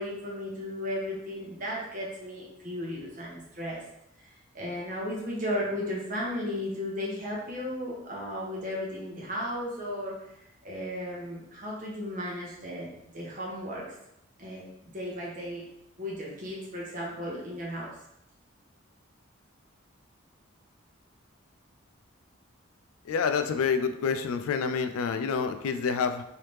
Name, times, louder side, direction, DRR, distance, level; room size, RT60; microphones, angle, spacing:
voice 1, 0.0-3.8 4.5-12.9 13.1-13.9 14.4-15.7 16.0-17.9, left 1 dB, 40° right, -4 dB, 0.9 m, -35 dB
voice 2, 23.0-26.2, left 5 dB, 85° left, 8 dB, 0.3 m, -28 dB
3.2 x 2.8 x 3.2 m, 0.81 s
head